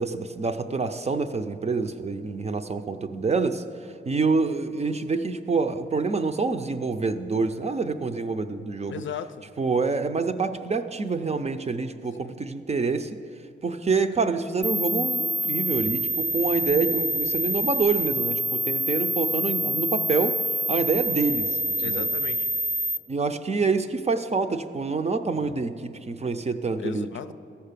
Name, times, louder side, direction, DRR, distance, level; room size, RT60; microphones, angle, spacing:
voice 1, 0.0-3.6 4.1-9.0 9.6-13.2 13.6-20.4 20.7-22.0 23.1-27.3, right 4 dB, 35° right, 0.5 m, -26 dB
voice 2, 8.9-9.4 12.2-12.4 21.8-22.5 25.5-25.6 26.8-27.3, left 7 dB, 75° left, 0.5 m, -36 dB
sound 1, 14.6-23.0, right 1 dB, 5° left, 0.6 m, -27 dB
14.5 x 5.7 x 6.8 m
wide cardioid pair, 90°, 20 cm